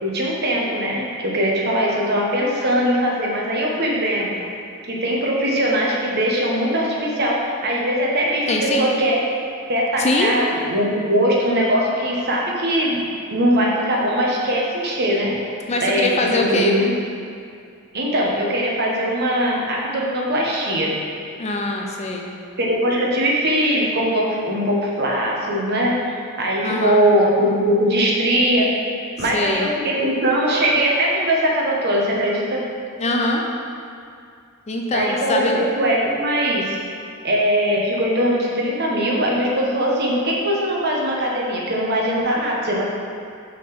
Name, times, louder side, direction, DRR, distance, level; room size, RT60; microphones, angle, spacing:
voice 1, 0.0-4.4 4.9-9.2 9.7-13.0 13.3-15.4 15.8-16.9 17.9-20.9 22.6-25.9 26.4-28.7 29.2-32.6 34.9-36.8 37.2-42.8, equal, 50° right, -3 dB, 1.1 m, -21 dB
voice 2, 8.5-8.9 10.0-10.3 15.7-16.8 21.4-22.3 26.6-27.0 29.2-29.7 33.0-33.4 34.7-35.6, left 2 dB, 30° left, 1 dB, 0.5 m, -22 dB
6.1 x 3.8 x 6.0 m, 2.4 s
head